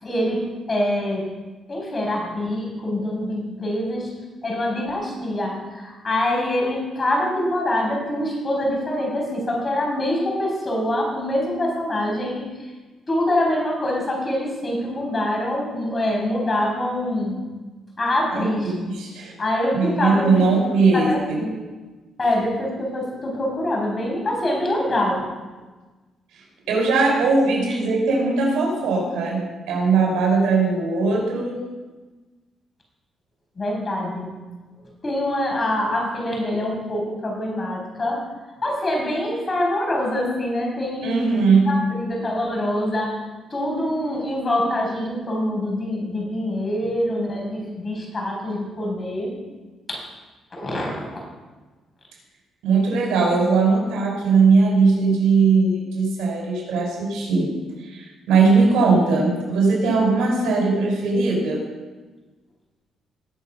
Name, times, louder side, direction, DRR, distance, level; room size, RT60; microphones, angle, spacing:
voice 1, 0.0-1.3 1.7-4.1 4.4-12.5 13.1-17.5 18.0-18.7 19.4-20.5 20.9-21.6 22.2-25.3 33.6-34.4 35.0-38.2 38.6-41.4 41.7-43.2 43.5-49.3 49.9-50.0 50.5-51.3, left 1 dB, 30° left, -1 dB, 5.4 m, -25 dB
voice 2, 18.3-19.3 19.7-21.4 26.7-31.6 41.0-41.8 52.6-57.5 57.8-61.6, right 4 dB, 85° right, -2 dB, 5.2 m, -19 dB
19.5 x 6.7 x 5.7 m, 1.3 s
cardioid pair, 90°, 0 cm